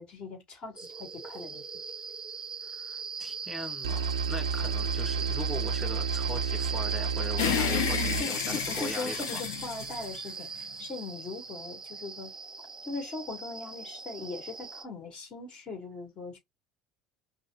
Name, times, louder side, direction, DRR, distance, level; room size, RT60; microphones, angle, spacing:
voice 1, 0.0-1.7 8.2-12.3 12.9-16.4, left 3 dB, 40° left, 1.8 m, -40 dB
sound 1, 0.8-14.8, right 5 dB, 25° right, 0.5 m, -39 dB
voice 2, 2.6-9.4, equal, 10° left, 2.2 m, -40 dB
sound 2, 3.8-8.2, right 5 dB, 75° right, 0.4 m, -31 dB
sound 3, 7.4-10.9, left 9 dB, 65° left, 0.6 m, -31 dB
5.2 x 2.0 x 2.6 m
figure-of-eight pair, 65°, 3 cm